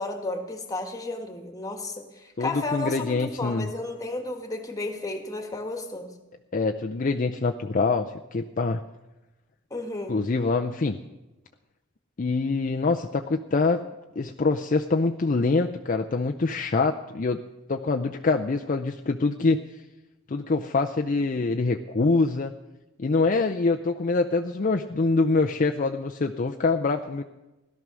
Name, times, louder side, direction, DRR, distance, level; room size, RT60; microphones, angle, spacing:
voice 1, 0.0-6.1 9.7-10.2, left 2 dB, 15° left, 5 dB, 1.6 m, -33 dB
voice 2, 2.4-3.7 6.5-8.8 10.1-11.0 12.2-13.8 14.2-17.4 17.7-19.6 20.3-22.5 23.0-27.2, left 3 dB, 40° left, 5 dB, 0.5 m, -25 dB
17.0 x 12.0 x 6.2 m, 1.1 s
head